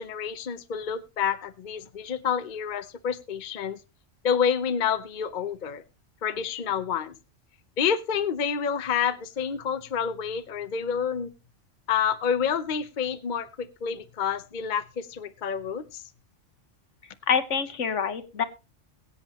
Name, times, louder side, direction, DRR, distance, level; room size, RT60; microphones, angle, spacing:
voice 1, 0.0-3.8 4.2-5.8 6.2-7.1 7.8-11.3 11.9-16.0, left 7 dB, 45° left, 11 dB, 0.8 m, -28 dB
voice 2, 17.3-18.4, left 6 dB, 70° left, 11 dB, 1.5 m, -26 dB
22.0 x 8.4 x 2.9 m, 0.27 s
omnidirectional pair, 1.3 m